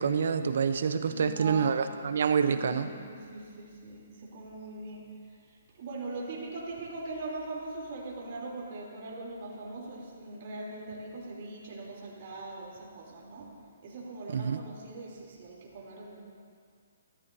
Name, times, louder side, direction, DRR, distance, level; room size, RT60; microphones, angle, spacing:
voice 1, 0.0-2.9 14.3-14.6, right 6 dB, 65° right, 10 dB, 0.7 m, -27 dB
voice 2, 1.1-1.9 2.4-5.0 5.8-13.5 13.8-16.2, right 2 dB, 50° right, -4 dB, 3.3 m, -41 dB
14.0 x 13.5 x 2.8 m, 2.2 s
hypercardioid pair, 150°, 0 cm